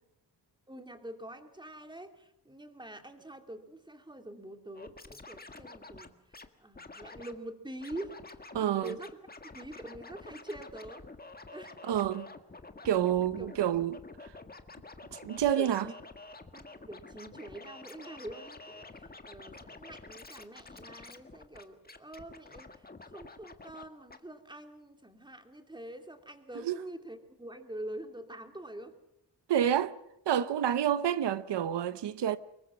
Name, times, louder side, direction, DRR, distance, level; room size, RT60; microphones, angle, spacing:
voice 1, 0.7-6.2 6.6-8.2 8.5-9.2 9.5-11.0 11.5-11.8 13.4-13.5 15.6-16.0 16.5-28.9, right 1 dB, 10° right, 2.6 m, -45 dB
Scratching (performance technique), 4.7-6.5 6.7-7.3 7.8-8.6 8.8-23.8 24.1-24.2, left 3 dB, 20° left, 1.7 m, -49 dB
voice 2, 8.5-8.9 11.9-12.3 12.8-14.0 15.1-15.9 26.6-26.8 29.5-29.9 30.3-32.4, right 10 dB, 85° right, 0.9 m, -28 dB
25.0 x 22.0 x 6.0 m
wide cardioid pair, 110°, 41 cm